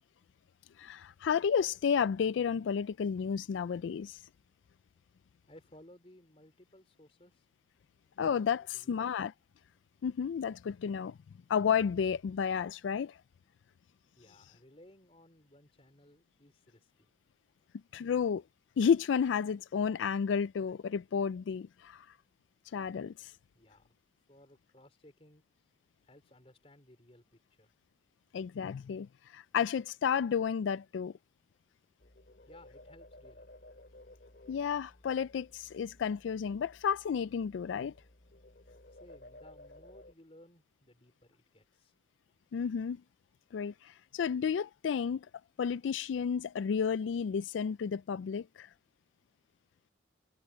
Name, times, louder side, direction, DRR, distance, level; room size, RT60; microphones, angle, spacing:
voice 1, 0.8-4.2 8.2-9.3 10.0-11.2 11.5-13.2 17.9-18.4 18.8-22.1 22.7-23.3 28.3-31.1 34.5-37.9 42.5-43.0 43.5-45.3 45.6-48.7, left 7 dB, 85° left, 0.3 m, -32 dB
voice 2, 5.5-7.5 8.6-9.1 14.2-17.1 23.5-23.9 24.3-25.4 26.0-27.7 32.5-33.5 38.9-41.9, left 1 dB, 30° left, 3.8 m, -59 dB
sound 1, 32.0-40.1, left 1 dB, 55° left, 2.7 m, -56 dB
head